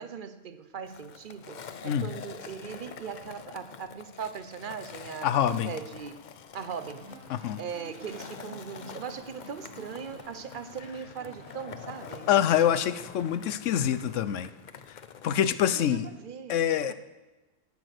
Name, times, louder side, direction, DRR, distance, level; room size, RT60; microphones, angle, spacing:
voice 1, 0.0-6.2 6.5-7.1 7.6-12.3 15.7-16.9, right 6 dB, 50° right, 11 dB, 0.8 m, -39 dB
Skateboard, 0.8-15.5, left 7 dB, 50° left, 0.6 m, -46 dB
voice 2, 5.2-5.7 7.3-7.6 12.3-14.5 15.2-16.1 16.5-16.9, left 10 dB, 75° left, 14 dB, 1.0 m, -25 dB
sound 1, 6.5-13.4, right 1 dB, 75° right, 2.0 m, -51 dB
17.0 x 6.1 x 6.5 m, 1.1 s
omnidirectional pair, 1.3 m